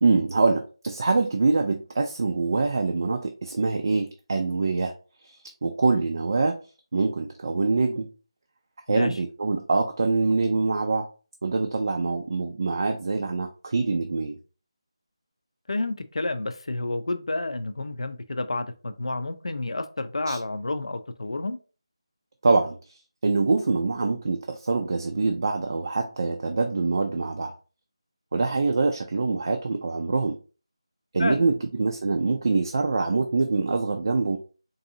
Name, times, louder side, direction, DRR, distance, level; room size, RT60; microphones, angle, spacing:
voice 1, 0.0-4.9 5.2-6.6 6.9-8.1 8.9-11.1 11.4-14.4 20.3-20.4 22.4-22.8 23.2-27.5 28.3-30.4 31.1-34.4, right 3 dB, 45° right, 4 dB, 0.4 m, -24 dB
voice 2, 8.9-9.2 15.7-21.6 31.2-31.5, left 2 dB, 75° left, 9 dB, 0.5 m, -30 dB
3.9 x 2.7 x 2.7 m, 0.35 s
figure-of-eight pair, 170°, 3 cm